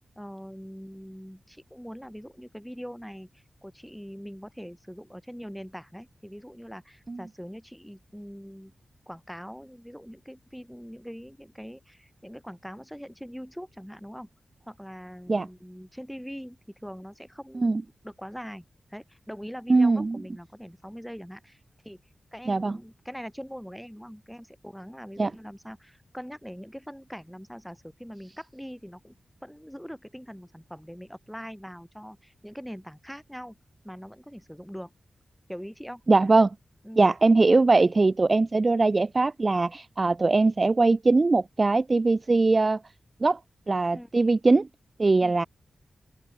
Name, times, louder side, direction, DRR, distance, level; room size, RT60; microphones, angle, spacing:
voice 1, 0.2-8.7 9.1-14.3 14.6-17.7 18.0-18.6 18.9-22.0 22.3-29.1 29.4-33.6 33.8-34.9 35.5-36.0 36.8-37.0 43.9-44.1 45.2-45.4, equal, ahead, 4.3 m, -42 dB
voice 2, 19.7-20.2 22.5-22.8 25.2-25.3 36.1-36.5 37.0-42.8 43.2-43.4 43.7-44.7 45.0-45.5, right 3 dB, 35° right, 1.0 m, -21 dB
open air
wide cardioid pair, 100°, 0 cm